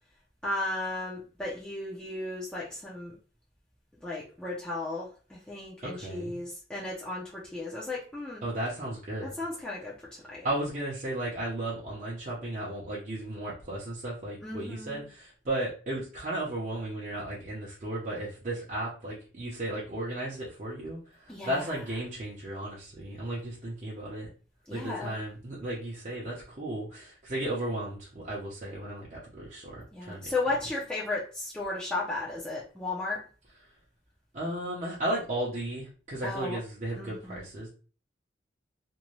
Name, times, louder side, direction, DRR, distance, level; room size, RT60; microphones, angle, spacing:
voice 1, 0.4-3.1 4.0-8.5 9.4-10.5 14.4-14.9 21.3-21.7 24.7-25.2 29.9-33.2 36.2-36.6 37.0-37.4, left 2 dB, 5° left, -7 dB, 0.5 m, -35 dB
voice 2, 5.8-6.4 8.4-9.3 10.4-24.3 24.7-30.3 34.3-37.7, right 1 dB, 40° right, -6 dB, 0.7 m, -35 dB
2.6 x 2.2 x 3.0 m, 0.38 s
head